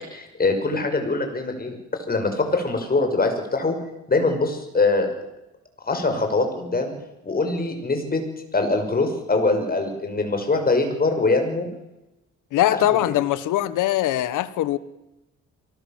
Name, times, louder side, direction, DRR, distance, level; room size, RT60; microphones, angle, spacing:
voice 1, 0.1-1.7 2.1-3.8 4.1-5.1 5.9-6.9 7.2-8.2 8.5-11.7 12.7-12.8, left 3 dB, 30° left, 5 dB, 6.2 m, -23 dB
voice 2, 12.5-14.8, left 13 dB, 85° left, 16 dB, 1.3 m, -21 dB
24.0 x 19.0 x 7.5 m, 0.94 s
cardioid pair, 90°, 30 cm